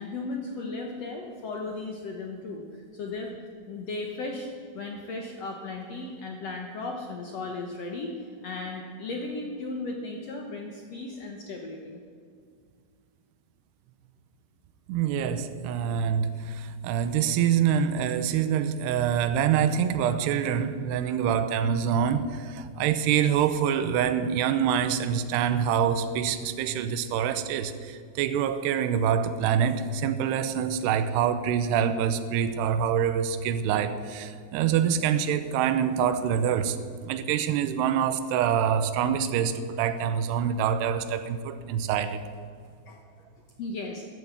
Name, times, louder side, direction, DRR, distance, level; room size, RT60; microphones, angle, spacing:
voice 1, 0.0-2.6 2.9-3.3 3.7-4.5 4.7-8.1 8.4-12.0 42.9-43.0 43.6-44.0, left 3 dB, 80° left, 2 dB, 1.4 m, -36 dB
voice 2, 14.9-36.8 37.0-42.2, right 8 dB, 85° right, 10 dB, 2.9 m, -25 dB
13.5 x 11.0 x 8.2 m, 2.1 s
omnidirectional pair, 4.7 m